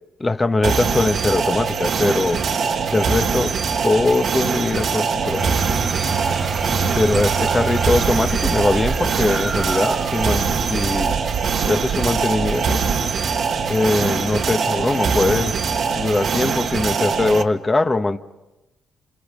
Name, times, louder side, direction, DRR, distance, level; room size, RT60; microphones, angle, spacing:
voice 1, 0.2-2.4 2.9-3.5 3.8-5.5 6.9-11.2 11.6-12.8 13.7-15.6 15.9-18.2, left 2 dB, 20° left, 1.1 m, -21 dB
sound 1, 0.6-17.4, right 5 dB, 60° right, 1.6 m, -22 dB
sound 2, 5.2-13.7, right 7 dB, 80° right, 3.4 m, -30 dB
sound 3, 5.4-11.1, right 4 dB, 25° right, 1.0 m, -29 dB
27.5 x 27.0 x 5.4 m
cardioid pair, 90°, 0 cm